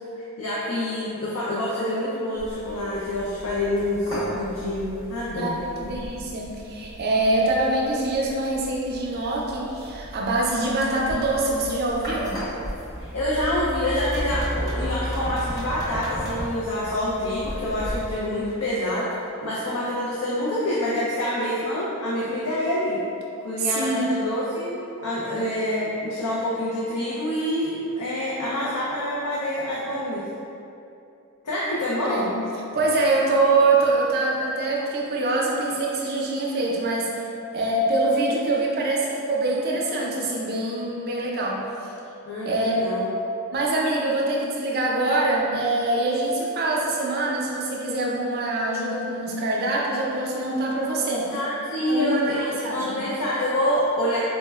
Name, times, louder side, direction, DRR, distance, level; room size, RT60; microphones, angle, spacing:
voice 1, 0.2-5.5 13.1-19.1 19.4-23.0 23.4-30.2 31.4-32.3 42.2-43.1 51.3-54.2, left 1 dB, 75° left, -7 dB, 0.5 m, -26 dB
sound 1, 2.4-18.2, equal, 15° left, 0.8 m, -35 dB
voice 2, 5.4-12.4 23.6-24.1 32.0-32.3 32.7-37.1 37.5-41.6 42.4-42.7 43.5-51.3 51.9-53.0, right 2 dB, 45° right, -2 dB, 0.4 m, -24 dB
4.2 x 2.1 x 2.2 m, 2.7 s
head